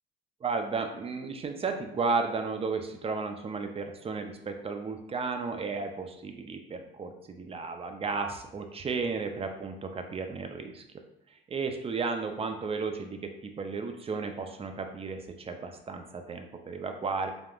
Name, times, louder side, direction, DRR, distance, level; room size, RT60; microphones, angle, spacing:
voice 1, 0.4-10.8 11.5-17.3, right 4 dB, 30° right, 6 dB, 0.4 m, -33 dB
3.4 x 2.4 x 2.3 m, 0.79 s
cardioid pair, 90°, 20 cm